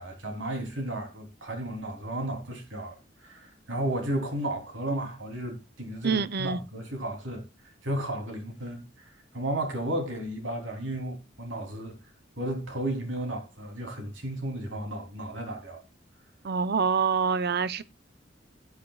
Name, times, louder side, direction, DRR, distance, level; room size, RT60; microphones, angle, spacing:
voice 1, 0.0-7.4 7.8-8.8 9.3-12.0 12.4-15.8, right 1 dB, 85° right, 3.4 m, -33 dB
voice 2, 6.0-6.6 16.4-17.8, right 5 dB, 55° right, 0.7 m, -26 dB
17.5 x 8.4 x 2.4 m
head